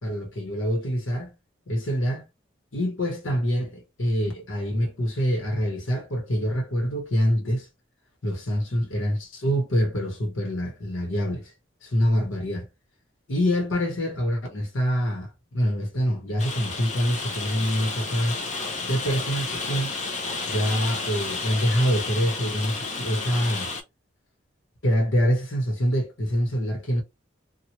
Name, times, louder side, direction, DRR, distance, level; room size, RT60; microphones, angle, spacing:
voice 1, 0.0-1.3 1.7-2.3 2.7-7.7 8.2-11.5 11.8-12.7 13.3-18.4 18.8-19.9 20.5-23.7 24.8-27.0, equal, 75° left, 1.1 m, -25 dB
Rain, 16.4-23.8, left 3 dB, 35° left, 0.6 m, -31 dB
2.9 x 2.3 x 2.9 m
head